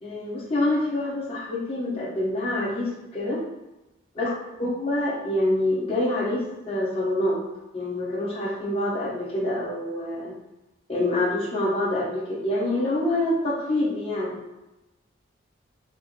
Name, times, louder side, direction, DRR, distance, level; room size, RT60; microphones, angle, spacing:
voice 1, 0.0-3.4 4.1-4.3 4.6-7.4 7.7-10.3 10.9-14.4, left 1 dB, 30° left, -7 dB, 1.3 m, -26 dB
5.1 x 2.1 x 4.0 m, 1.0 s
head